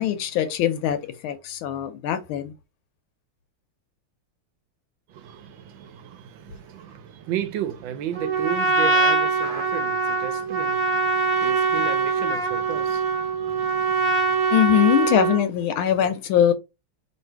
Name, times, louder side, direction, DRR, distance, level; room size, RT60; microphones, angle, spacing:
voice 1, 0.0-2.5 14.5-16.5, left 11 dB, 75° left, 1.3 m, -22 dB
voice 2, 5.1-14.5 15.8-15.9, right 9 dB, 75° right, 1.2 m, -34 dB
Trumpet, 8.1-15.5, right 4 dB, 40° right, 0.6 m, -23 dB
3.3 x 2.7 x 4.4 m
omnidirectional pair, 2.4 m